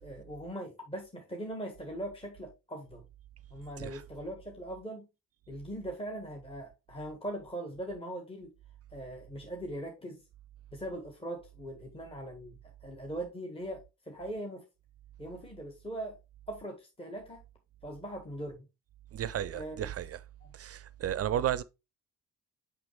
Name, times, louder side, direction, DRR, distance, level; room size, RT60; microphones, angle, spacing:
voice 1, 0.0-3.0 3.5-5.1 5.5-8.5 8.9-10.2 10.7-14.6 15.2-16.2 16.5-17.4 17.8-18.7 19.5-19.9, right 1 dB, 10° left, 1.5 m, -40 dB
voice 2, 19.1-20.2 20.5-21.6, right 11 dB, 35° right, 0.5 m, -33 dB
6.0 x 6.0 x 3.2 m
figure-of-eight pair, 40°, 44 cm